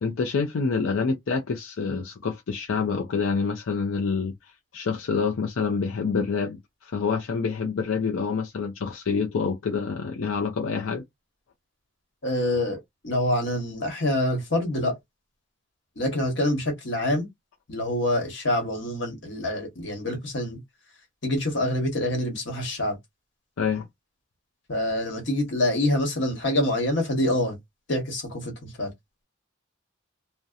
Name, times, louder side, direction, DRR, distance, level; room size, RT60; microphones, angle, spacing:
voice 1, 0.0-4.3 4.7-11.0 23.6-23.9, left 5 dB, 85° left, 0.5 m, -27 dB
voice 2, 12.2-15.0 16.0-17.3 17.7-20.6 21.2-23.0 24.7-27.6 27.9-28.9, left 1 dB, 65° left, 1.2 m, -26 dB
2.6 x 2.1 x 2.4 m
head